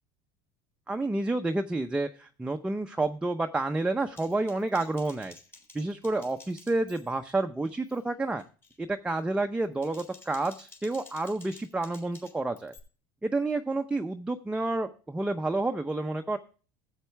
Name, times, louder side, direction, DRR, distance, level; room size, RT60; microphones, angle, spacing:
voice 1, 0.9-5.3 5.7-8.4 8.8-12.7 13.2-16.4, right 2 dB, 10° right, 4 dB, 0.8 m, -29 dB
Typing, 4.2-7.3 7.6-8.0 8.4-8.8 9.6-12.8, left 3 dB, 20° left, 3.1 m, -53 dB
12.5 x 8.2 x 3.4 m, 0.36 s
supercardioid pair, 100°, 11 cm